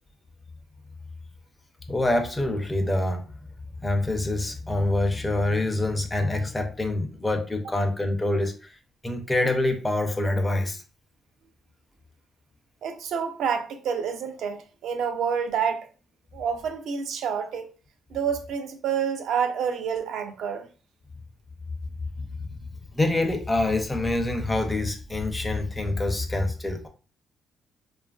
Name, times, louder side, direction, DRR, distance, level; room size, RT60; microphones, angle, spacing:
voice 1, 1.9-3.2 3.8-8.7 9.0-10.8 22.2-22.3 22.9-26.9, left 2 dB, 15° left, 0.6 m, -26 dB
voice 2, 12.8-15.9 16.3-17.7 18.1-20.7, right 7 dB, 75° right, 0.5 m, -28 dB
2.8 x 2.4 x 2.3 m
cardioid pair, 90°, 0 cm